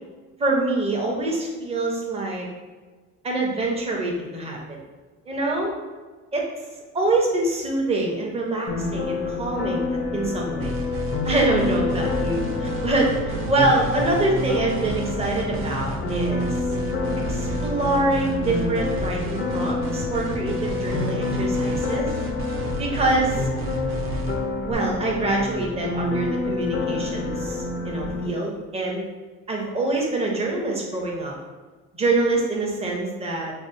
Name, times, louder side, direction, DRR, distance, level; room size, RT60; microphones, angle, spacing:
voice 1, 0.4-2.5 3.2-4.8 5.3-5.7 6.3-6.4 6.9-10.8 11.2-16.5 17.3-22.1 22.8-23.4 24.6-29.1 29.5-31.3 31.9-33.5, right 2 dB, 20° right, -2 dB, 0.8 m, -25 dB
sound 1, 8.7-28.3, left 3 dB, 40° left, 0.4 m, -28 dB
sound 2, 10.6-24.7, right 3 dB, 45° right, 0.4 m, -32 dB
5.1 x 2.1 x 2.6 m, 1.3 s
cardioid pair, 125°, 29 cm